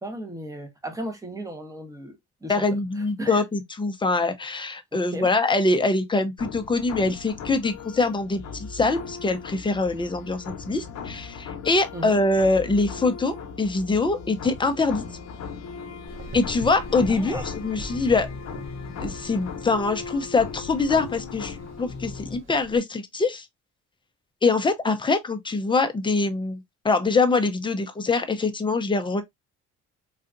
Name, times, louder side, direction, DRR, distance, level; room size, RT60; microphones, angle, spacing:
voice 1, 0.0-2.6 3.2-3.4 4.9-5.3 11.9-12.2 17.1-17.5, right 1 dB, 10° right, 1.0 m, -36 dB
voice 2, 2.5-15.0 16.3-18.3 19.0-23.5 24.4-29.2, left 3 dB, 15° left, 0.6 m, -24 dB
sound 1, 6.4-22.4, left 5 dB, 65° left, 0.8 m, -38 dB
Gurgling / Engine, 16.1-22.8, right 1 dB, 45° right, 1.0 m, -42 dB
3.7 x 2.4 x 2.5 m
cardioid pair, 90°, 30 cm